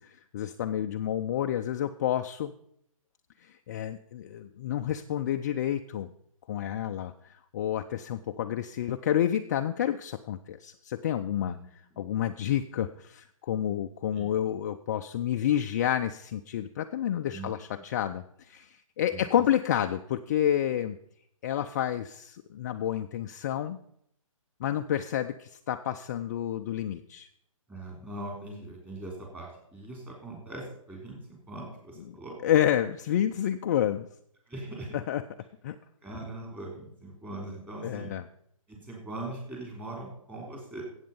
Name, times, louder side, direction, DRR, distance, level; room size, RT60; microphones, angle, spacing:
voice 1, 0.0-2.5 3.4-6.1 6.5-11.6 12.0-21.0 21.4-23.8 24.6-27.3 32.1-32.2 32.4-34.1 34.9-35.2 35.6-35.8 37.8-38.2, left 10 dB, 30° left, 6 dB, 0.4 m, -29 dB
voice 2, 27.7-32.4 34.5-35.0 36.0-38.1 38.7-40.8, right 2 dB, 10° right, -1 dB, 3.5 m, -41 dB
15.5 x 8.0 x 5.4 m, 0.71 s
hypercardioid pair, 150°, 18 cm